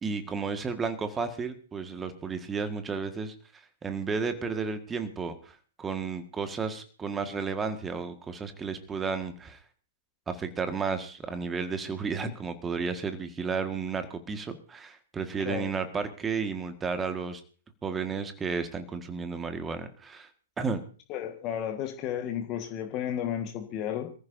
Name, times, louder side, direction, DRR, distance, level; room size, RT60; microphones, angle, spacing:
voice 1, 0.0-9.6 10.3-17.4 17.8-20.3 20.6-20.8, right 5 dB, 15° right, 8 dB, 1.7 m, -33 dB
voice 2, 15.4-15.7 21.1-24.1, left 10 dB, 30° left, 5 dB, 1.6 m, -33 dB
27.0 x 14.5 x 2.7 m, 0.39 s
figure-of-eight pair, 115°, 0 cm